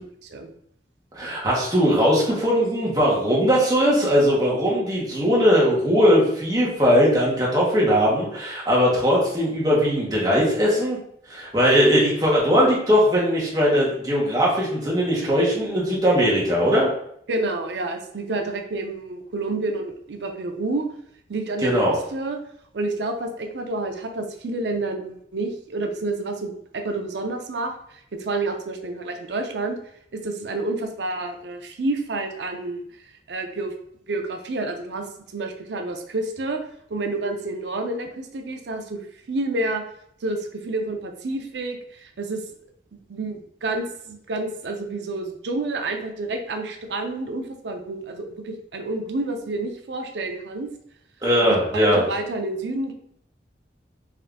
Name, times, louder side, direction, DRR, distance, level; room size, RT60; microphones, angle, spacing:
voice 1, 1.1-11.0 11.3-16.9 21.6-22.0 51.2-52.0, equal, 20° right, -5 dB, 1.1 m, -19 dB
voice 2, 17.3-20.9 21.3-22.4 22.7-27.7 28.2-29.8 30.1-32.8 33.3-33.7 34.1-35.1 35.3-36.6 36.9-39.0 39.3-39.8 40.2-42.4 43.1-50.7 51.5-52.9, right 2 dB, 75° right, 4 dB, 0.5 m, -29 dB
3.7 x 2.6 x 3.4 m, 0.70 s
head